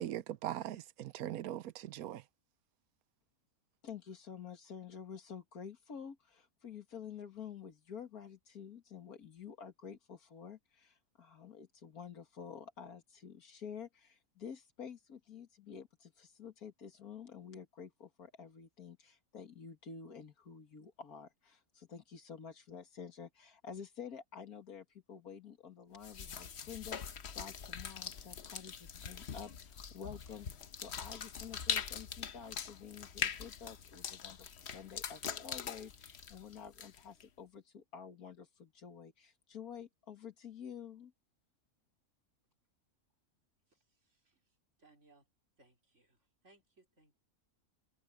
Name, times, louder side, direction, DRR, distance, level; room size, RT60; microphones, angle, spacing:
voice 1, 0.0-2.2, right 12 dB, 85° right, 1.1 m, -40 dB
voice 2, 3.8-30.5 30.7-41.1, left 7 dB, 90° left, 2.4 m, -50 dB
sound 1, 26.0-37.2, left 7 dB, 50° left, 1.1 m, -42 dB
voice 3, 43.7-44.4 44.8-45.3 45.6-46.2 46.4-47.2, right 2 dB, 55° right, 4.8 m, -67 dB
omnidirectional pair, 1.5 m